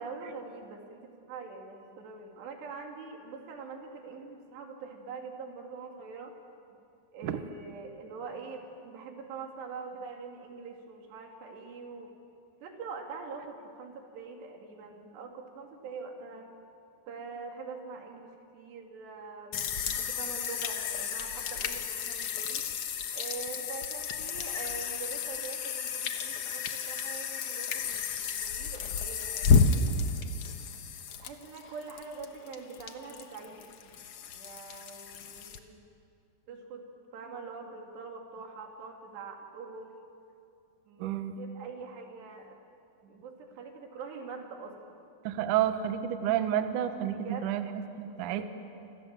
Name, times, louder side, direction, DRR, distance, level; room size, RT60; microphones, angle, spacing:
voice 1, 0.0-6.3 7.1-12.1 12.6-16.5 17.1-22.6 23.1-30.1 31.2-33.9 34.3-35.8 36.5-40.0 40.9-42.6 43.0-45.0 47.1-47.5 48.1-48.4, right 4 dB, 90° right, 2 dB, 4.8 m, -44 dB
sound 1, 19.5-35.6, left 5 dB, 80° left, 1.3 m, -31 dB
voice 2, 41.0-41.3 45.2-47.7 48.0-48.4, right 10 dB, 65° right, 9 dB, 2.3 m, -30 dB
28.5 x 26.0 x 7.4 m, 2.6 s
omnidirectional pair, 4.7 m